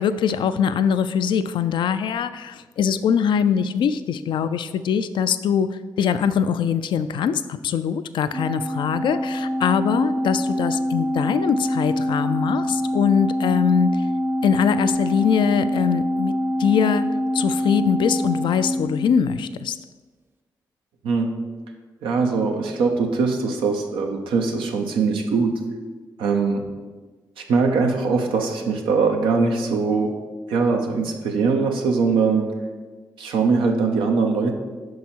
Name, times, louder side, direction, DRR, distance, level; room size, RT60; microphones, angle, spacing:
voice 1, 0.0-14.0 14.4-16.3 16.6-17.1 17.3-19.8, left 7 dB, 65° left, 12 dB, 0.3 m, -22 dB
Organ, 8.3-19.6, equal, 25° right, 0.6 m, -25 dB
voice 2, 21.0-21.4 22.0-25.6 26.2-26.7 27.4-30.2 30.5-32.6 33.2-34.5, right 4 dB, 80° right, 3 dB, 0.7 m, -21 dB
5.9 x 4.7 x 4.4 m, 1.3 s
hypercardioid pair, 45°, 9 cm